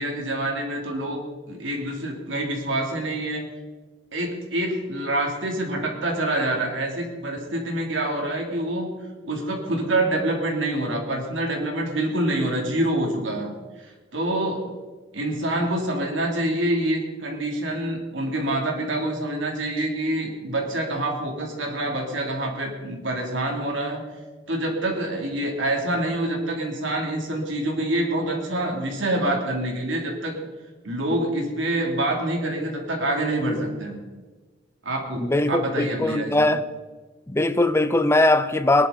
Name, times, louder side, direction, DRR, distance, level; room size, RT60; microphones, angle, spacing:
voice 1, 0.0-3.4 4.1-8.9 9.2-13.5 13.8-14.7 15.1-24.0 24.5-30.4 30.8-34.0 34.8-36.5, right 1 dB, 70° right, 3.1 m, -26 dB
voice 2, 35.2-36.7 37.3-38.9, left 2 dB, 15° left, 0.6 m, -20 dB
20.5 x 11.5 x 4.2 m
head